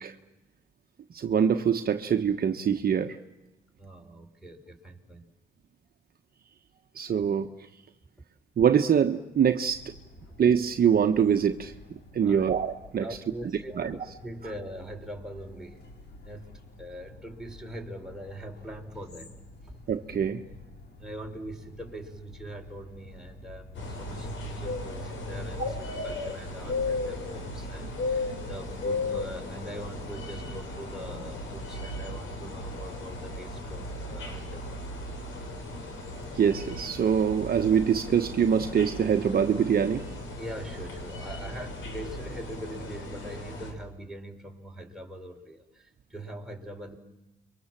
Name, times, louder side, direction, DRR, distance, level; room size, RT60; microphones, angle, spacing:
voice 1, 1.1-3.2 6.9-7.5 8.6-9.9 10.4-11.7 12.1-13.0 13.8-13.9 19.9-20.4 28.3-28.4 36.3-40.0, right 7 dB, 50° right, 6 dB, 1.3 m, -24 dB
voice 2, 3.8-5.3 10.3-10.4 12.2-12.5 13.0-15.8 16.2-19.3 19.6-19.7 21.0-34.8 40.4-47.0, right 1 dB, 5° right, 1 dB, 4.7 m, -42 dB
sound 1, 9.6-27.1, left 2 dB, 55° left, 4.8 m, -50 dB
sound 2, 23.7-43.7, left 2 dB, 75° left, 6.3 m, -36 dB
29.5 x 24.0 x 7.6 m, 0.99 s
cardioid pair, 90°, 20 cm